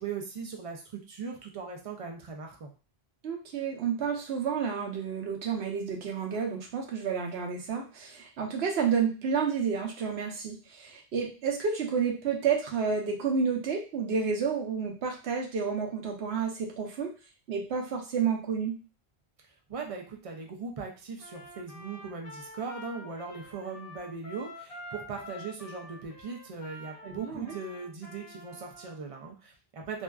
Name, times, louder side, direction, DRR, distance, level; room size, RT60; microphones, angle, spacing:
voice 1, 0.0-2.7 19.7-30.0, right 5 dB, 60° right, 1 dB, 0.3 m, -39 dB
voice 2, 3.2-17.1 17.5-18.7 27.0-27.5, right 6 dB, 80° right, 1 dB, 0.9 m, -30 dB
Trumpet, 21.2-29.0, left 1 dB, 45° left, 0.5 m, -47 dB
2.5 x 2.2 x 2.2 m, 0.34 s
omnidirectional pair, 1.1 m